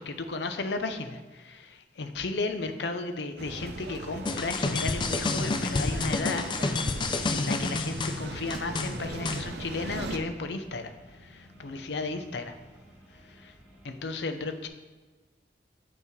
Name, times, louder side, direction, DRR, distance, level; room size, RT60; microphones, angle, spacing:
voice 1, 0.0-6.4 7.3-12.6 13.3-13.5 13.8-14.7, left 3 dB, 85° left, 8 dB, 0.6 m, -34 dB
sound 1, 3.4-10.2, right 3 dB, 70° right, 0.5 m, -39 dB
sound 2, 4.2-9.4, left 3 dB, 25° left, 0.3 m, -29 dB
sound 3, 5.0-14.0, equal, 10° right, 1.4 m, -56 dB
7.3 x 5.6 x 3.1 m, 1.3 s
head